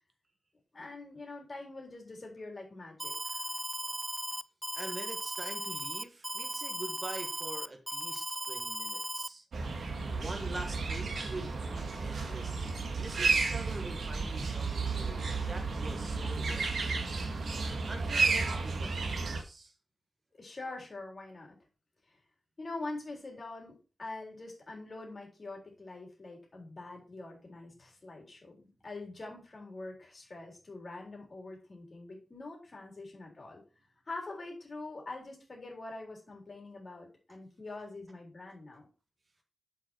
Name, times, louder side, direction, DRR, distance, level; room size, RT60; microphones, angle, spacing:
voice 1, 0.7-3.5 20.3-21.6 22.6-33.6 34.1-38.9, left 2 dB, 40° left, -1 dB, 3.9 m, -44 dB
Alarm, 3.0-9.3, right 1 dB, 10° right, 0.4 m, -37 dB
voice 2, 4.7-9.5 10.1-15.2 15.5-16.9 17.9-19.7, right 2 dB, 35° right, 3 dB, 1.7 m, -44 dB
sound 1, 9.5-19.4, right 4 dB, 80° right, 1.7 m, -32 dB
7.8 x 6.1 x 4.6 m, 0.34 s
wide cardioid pair, 135°, 0 cm